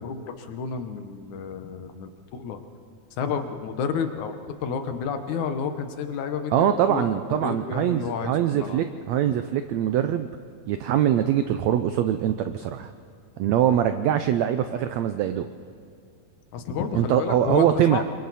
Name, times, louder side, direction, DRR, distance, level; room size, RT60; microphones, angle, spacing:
voice 1, 0.0-2.6 3.2-7.1 7.4-8.8 16.5-18.0, left 6 dB, 70° left, 7 dB, 2.3 m, -31 dB
voice 2, 6.5-10.3 10.7-12.9 13.4-15.5 16.9-18.0, right 10 dB, 80° right, 9 dB, 1.5 m, -23 dB
27.0 x 23.5 x 4.2 m, 2.3 s
omnidirectional pair, 3.8 m